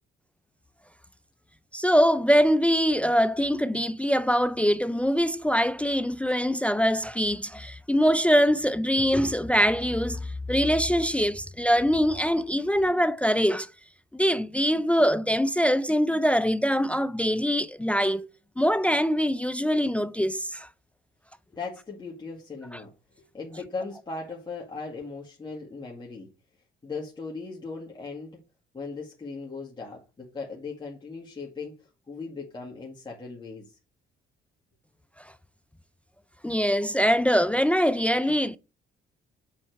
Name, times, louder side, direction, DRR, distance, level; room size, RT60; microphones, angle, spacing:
voice 1, 1.7-13.7 14.1-18.3 18.6-20.7 36.4-38.6, equal, 5° left, 0.4 m, -23 dB
voice 2, 21.5-22.9 23.3-26.3 26.8-28.4 28.7-33.8, left 4 dB, 20° left, 1.9 m, -38 dB
7.2 x 4.3 x 4.5 m
cardioid pair, 90°, 20 cm